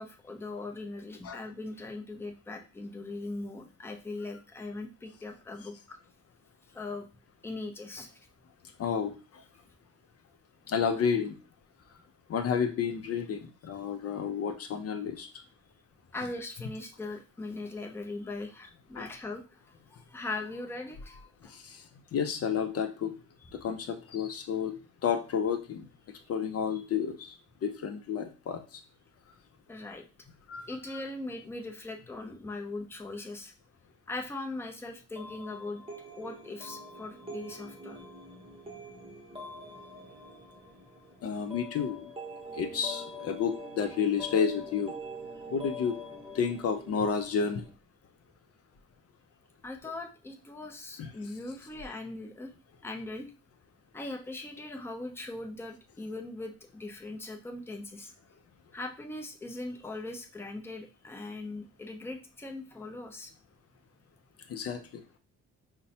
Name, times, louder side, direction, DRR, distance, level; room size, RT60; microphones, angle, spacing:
voice 1, 0.0-6.0 6.7-7.1 7.4-8.1 16.1-21.6 26.7-26.8 29.7-30.0 30.7-33.5 34.1-35.8 36.2-38.0 49.6-52.5 52.8-53.3 53.9-58.1 58.7-63.3, left 2 dB, 10° left, 3 dB, 0.6 m, -40 dB
voice 2, 8.8-9.4 10.7-11.4 12.3-15.3 19.0-19.1 21.5-21.8 22.1-23.1 23.6-24.7 25.0-25.8 26.3-27.3 27.6-28.8 30.5-30.7 30.9-31.0 41.2-42.1 42.5-44.9 45.5-46.0 46.3-47.7 51.0-51.1 64.5-65.0, left 7 dB, 50° left, 7 dB, 0.5 m, -31 dB
sound 1, 35.2-47.7, left 1 dB, 20° right, 0.9 m, -44 dB
5.2 x 2.1 x 2.7 m, 0.33 s
cardioid pair, 90°, 30 cm